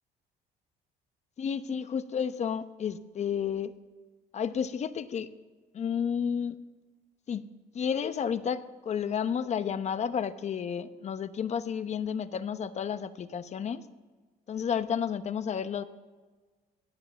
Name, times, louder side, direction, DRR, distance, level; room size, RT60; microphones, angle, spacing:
voice 1, 1.4-3.8 4.3-5.3 5.7-6.6 7.3-7.5 7.7-13.8 14.5-15.8, left 7 dB, 40° left, 12 dB, 0.9 m, -31 dB
17.5 x 11.5 x 7.0 m, 1.4 s
cardioid pair, 110°, 17 cm